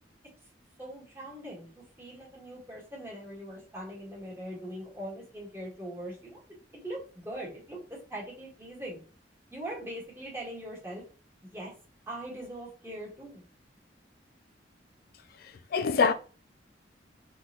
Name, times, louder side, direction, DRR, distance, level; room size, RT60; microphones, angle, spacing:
voice 1, 0.8-6.4 6.8-9.0 9.5-11.0 11.4-11.7 12.1-13.4, right 1 dB, 15° right, 1.5 m, -41 dB
voice 2, 15.4-16.1, left 5 dB, 55° left, 0.3 m, -25 dB
3.8 x 3.7 x 2.8 m
head